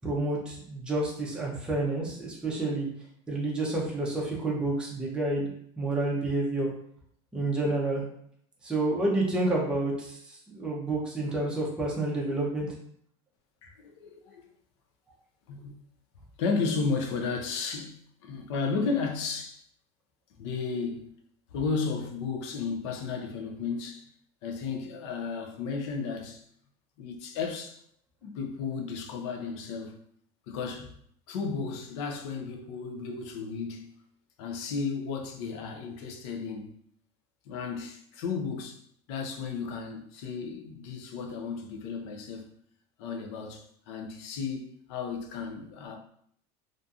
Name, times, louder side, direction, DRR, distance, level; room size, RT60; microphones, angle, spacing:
voice 1, 0.0-2.9 3.3-6.7 7.3-8.0 8.6-12.7, right 2 dB, 5° right, 0.5 m, -29 dB
voice 2, 13.6-14.4 15.5-15.8 16.4-18.0 18.2-19.6 20.4-21.1 21.5-24.1 24.4-26.4 27.0-27.8 28.2-30.0 30.5-30.9 31.3-33.9 34.4-36.8 37.5-38.8 39.1-42.5 43.0-46.0, left 5 dB, 80° left, 0.5 m, -33 dB
2.7 x 2.5 x 2.3 m
cardioid pair, 160°, 14 cm